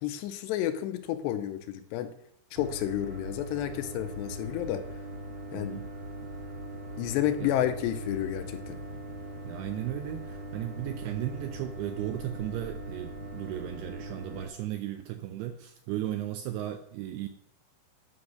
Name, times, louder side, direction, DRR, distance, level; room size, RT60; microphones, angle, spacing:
voice 1, 0.0-2.1 2.5-4.8 5.5-5.8 7.0-8.8, left 12 dB, 80° left, 8 dB, 2.7 m, -31 dB
sound 1, 2.6-14.5, right 1 dB, 55° right, 1.6 m, -40 dB
voice 2, 5.5-5.9 7.4-7.5 9.4-17.3, right 13 dB, 85° right, 8 dB, 2.3 m, -35 dB
9.6 x 5.8 x 6.4 m, 0.72 s
omnidirectional pair, 5.2 m